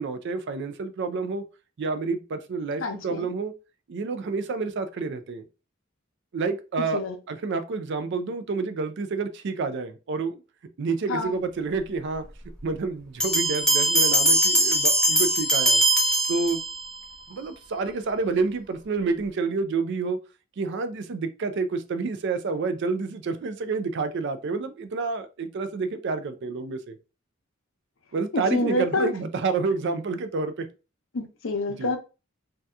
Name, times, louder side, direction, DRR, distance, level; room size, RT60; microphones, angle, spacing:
voice 1, 0.0-1.4 1.8-3.5 3.9-5.5 6.3-7.0 7.3-10.4 10.8-12.2 12.6-15.8 16.3-16.6 17.3-20.2 20.6-27.0 28.1-30.7 31.7-31.9, right 4 dB, 60° right, 10 dB, 0.4 m, -29 dB
voice 2, 2.8-3.3 6.9-7.1 11.1-11.3 28.3-29.1 31.1-32.0, left 2 dB, 75° left, 5 dB, 0.7 m, -27 dB
Bell, 13.2-17.0, right 1 dB, 5° left, 0.7 m, -21 dB
2.7 x 2.3 x 3.3 m, 0.31 s
head